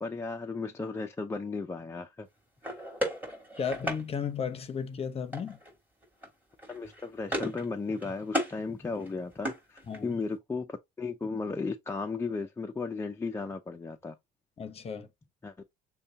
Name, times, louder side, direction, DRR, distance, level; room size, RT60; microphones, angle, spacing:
voice 1, 0.0-2.3 2.7-2.8 6.7-14.2 15.4-15.6, left 4 dB, 15° left, 0.4 m, -35 dB
sound 1, 2.6-4.0 5.3-5.7 6.0-6.3 6.6-7.7 7.9-8.6 8.9-10.2, equal, 10° right, 2.7 m, -35 dB
voice 2, 3.6-5.6 9.9-10.2 14.6-15.1, left 6 dB, 30° left, 0.8 m, -34 dB
6.5 x 2.3 x 2.7 m
cardioid pair, 110°, 20 cm